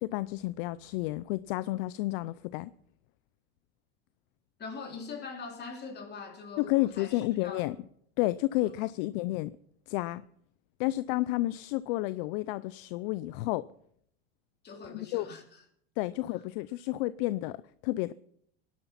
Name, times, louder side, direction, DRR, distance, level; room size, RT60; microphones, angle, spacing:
voice 1, 0.0-2.7 6.6-7.8 8.2-9.5 9.9-10.2 10.8-13.7 14.9-15.3 16.0-17.6 17.8-18.1, left 18 dB, 60° left, 17 dB, 0.6 m, -31 dB
voice 2, 4.6-7.6 8.8-8.9 14.6-15.6, left 4 dB, 30° left, 4 dB, 3.8 m, -43 dB
20.0 x 11.0 x 5.8 m, 0.70 s
hypercardioid pair, 105°, 31 cm